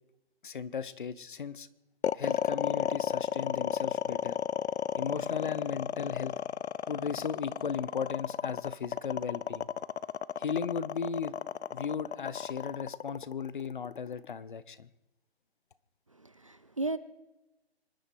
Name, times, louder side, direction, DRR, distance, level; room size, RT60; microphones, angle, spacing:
voice 1, 0.4-1.7 2.1-4.4 5.0-6.3 6.9-9.7 10.4-11.3 11.7-14.9, left 6 dB, 50° left, 16 dB, 0.9 m, -36 dB
sound 1, 2.0-14.3, left 8 dB, 80° left, 0.7 m, -33 dB
voice 2, 16.1-17.0, right 2 dB, 30° right, 14 dB, 0.5 m, -35 dB
26.0 x 11.5 x 4.6 m, 0.98 s
hypercardioid pair, 175°, 33 cm